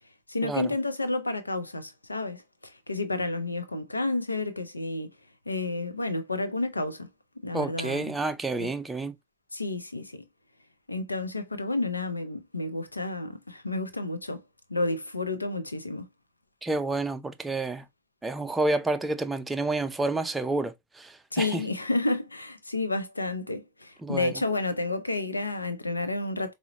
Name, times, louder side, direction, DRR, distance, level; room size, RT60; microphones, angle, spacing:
voice 1, 0.3-5.1 5.5-7.1 7.4-8.1 8.6-8.7 9.5-10.2 10.9-14.4 14.7-16.1 21.3-26.5, left 2 dB, 80° left, 0.5 m, -30 dB
voice 2, 7.5-9.1 16.6-17.8 18.2-21.6 24.0-24.4, right 2 dB, 10° right, 0.4 m, -29 dB
4.6 x 2.1 x 2.7 m
figure-of-eight pair, 90°, 0 cm